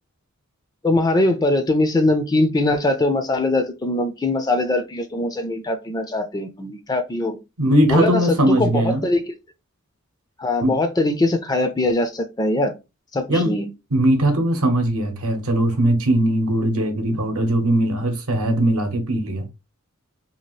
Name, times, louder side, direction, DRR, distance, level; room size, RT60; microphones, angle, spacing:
voice 1, 0.8-7.4 7.9-8.2 8.5-9.3 10.4-12.7 13.1-13.7, left 2 dB, 15° left, 0.3 m, -21 dB
voice 2, 7.6-9.0 10.6-10.7 13.3-13.6 13.9-19.5, right 1 dB, 75° right, 0.8 m, -20 dB
2.8 x 2.4 x 3.0 m
head